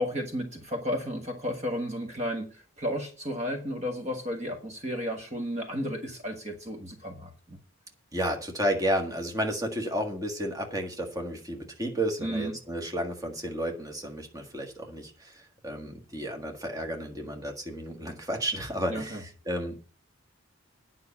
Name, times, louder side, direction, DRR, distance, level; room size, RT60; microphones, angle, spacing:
voice 1, 0.0-7.6 12.2-12.5 18.9-19.2, equal, 35° right, 4 dB, 1.4 m, -33 dB
voice 2, 8.1-19.9, equal, 15° right, 3 dB, 1.6 m, -32 dB
9.6 x 5.6 x 8.3 m, 0.38 s
head